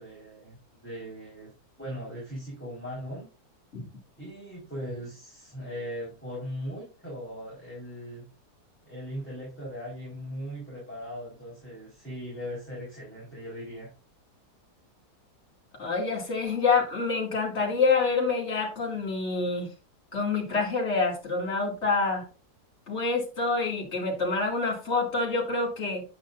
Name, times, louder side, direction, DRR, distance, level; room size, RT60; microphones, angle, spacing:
voice 1, 0.0-1.5 1.8-3.3 4.2-8.3 8.8-13.9, equal, 5° left, -6 dB, 4.1 m, -39 dB
voice 2, 15.8-19.7 20.1-22.2 22.9-26.0, left 4 dB, 45° left, -1 dB, 2.7 m, -27 dB
8.8 x 8.5 x 2.5 m, 0.33 s
omnidirectional pair, 1.7 m